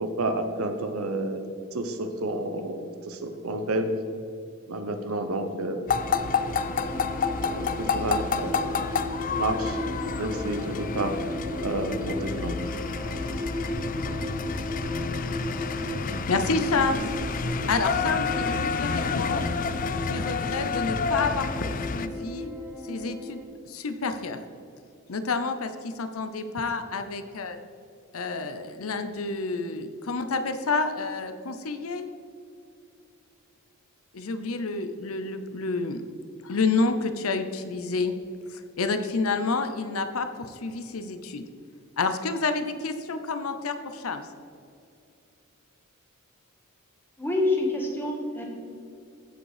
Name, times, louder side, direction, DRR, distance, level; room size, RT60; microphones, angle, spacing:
voice 1, 0.0-1.4 1.7-3.9 4.7-5.9 7.4-8.6 9.4-9.8 10.2-11.1 11.6-12.5, right 2 dB, 80° right, 7 dB, 1.0 m, -30 dB
sound 1, 5.9-22.1, left 5 dB, 40° left, 0.4 m, -29 dB
sound 2, 6.0-23.4, equal, 10° right, 1.0 m, -35 dB
voice 2, 16.3-17.0 17.7-19.5 20.0-22.5 22.9-23.4 23.7-24.4 25.1-27.6 28.1-32.1 34.1-36.0 36.4-38.2 38.5-41.4 42.0-44.2, left 3 dB, 75° left, 8 dB, 0.7 m, -29 dB
voice 3, 47.2-48.4, left 2 dB, 10° left, 0 dB, 1.6 m, -26 dB
15.0 x 5.3 x 5.0 m, 2.5 s
head